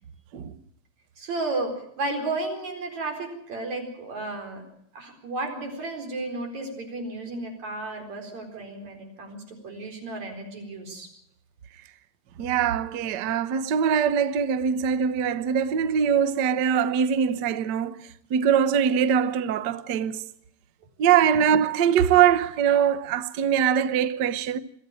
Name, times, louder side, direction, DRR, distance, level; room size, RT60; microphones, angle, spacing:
voice 1, 1.2-4.6 4.9-11.1, right 2 dB, 70° right, 5.6 m, -33 dB
voice 2, 12.4-20.3 21.0-24.6, right 8 dB, 85° right, 0.9 m, -22 dB
23.0 x 14.0 x 8.9 m
omnidirectional pair, 3.3 m